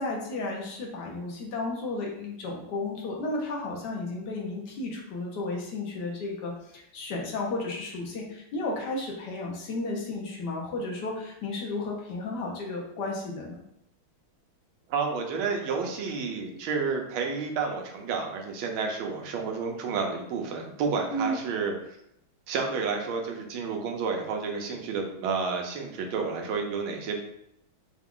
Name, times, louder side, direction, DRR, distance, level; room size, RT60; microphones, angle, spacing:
voice 1, 0.0-13.6 21.1-21.4, left 2 dB, 60° left, -1 dB, 1.4 m, -33 dB
voice 2, 14.9-21.7 22.5-27.2, right 5 dB, 85° right, 2 dB, 1.6 m, -30 dB
4.8 x 2.4 x 3.6 m, 0.78 s
omnidirectional pair, 2.2 m